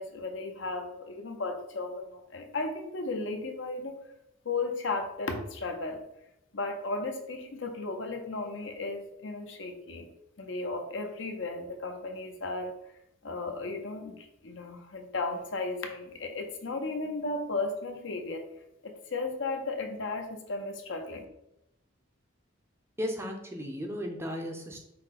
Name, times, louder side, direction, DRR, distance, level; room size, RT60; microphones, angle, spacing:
voice 1, 0.0-4.0 4.4-6.0 6.5-10.1 10.4-12.8 13.2-18.4 18.8-21.2, left 3 dB, 65° left, 4 dB, 0.7 m, -35 dB
voice 2, 23.0-24.8, equal, 10° right, 2 dB, 0.5 m, -35 dB
5.6 x 2.1 x 4.1 m, 0.83 s
head